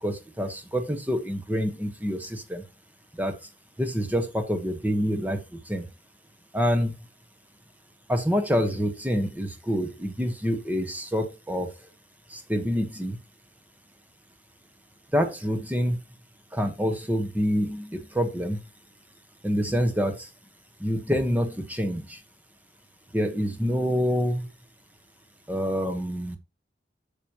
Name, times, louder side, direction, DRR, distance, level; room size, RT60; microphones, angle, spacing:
voice 1, 0.0-2.6 3.2-3.3 3.8-5.9 6.5-6.9 8.1-11.7 12.3-13.2 15.1-16.0 16.5-18.6 19.4-20.3 20.8-22.2 23.1-24.5 25.5-26.4, equal, 10° right, 1.2 m, -27 dB
9.6 x 7.0 x 3.0 m
head